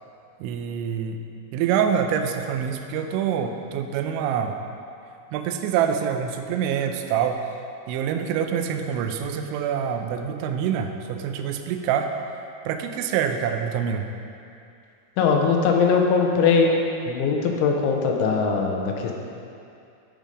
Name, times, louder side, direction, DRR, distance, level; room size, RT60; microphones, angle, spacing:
voice 1, 0.4-1.2 1.5-4.6 5.3-7.4 7.9-12.1 12.7-14.1, right 8 dB, 90° right, 6 dB, 3.0 m, -26 dB
voice 2, 15.2-16.8 17.1-19.1, left 5 dB, 90° left, 1 dB, 3.2 m, -20 dB
11.5 x 5.2 x 5.0 m, 2.6 s
omnidirectional pair, 5.3 m